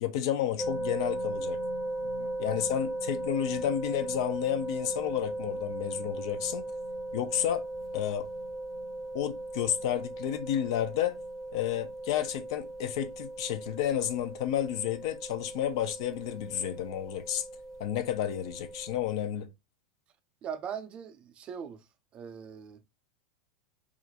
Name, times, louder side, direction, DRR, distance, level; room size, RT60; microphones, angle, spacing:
voice 1, 0.0-1.6 2.4-6.7 7.1-7.6 7.9-8.3 9.1-11.2 11.5-17.4 17.8-19.5, left 11 dB, 65° left, 0.4 m, -31 dB
sound 1, 0.6-19.0, right 1 dB, 20° left, 0.7 m, -37 dB
voice 2, 2.0-2.3 20.4-21.8 22.1-22.8, right 7 dB, 35° right, 0.4 m, -41 dB
2.4 x 2.1 x 2.7 m
hypercardioid pair, 100°, 3 cm